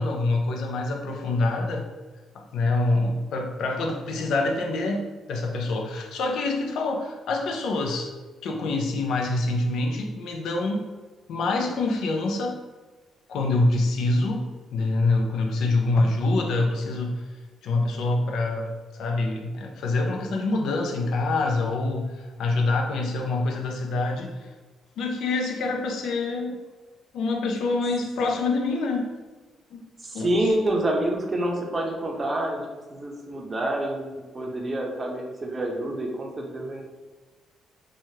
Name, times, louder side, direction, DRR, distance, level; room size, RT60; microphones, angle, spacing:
voice 1, 0.0-1.9 2.3-8.1 8.4-10.9 11.3-12.6 13.3-14.4 14.7-17.2 17.6-24.5 25.0-26.6 27.1-29.1 29.7-29.8 30.1-30.3, left 2 dB, 75° left, 1 dB, 0.5 m, -26 dB
voice 2, 30.0-32.6 32.9-36.8, right 1 dB, 30° right, 0 dB, 0.6 m, -27 dB
3.1 x 2.3 x 2.8 m, 1.3 s
cardioid pair, 90°, 0 cm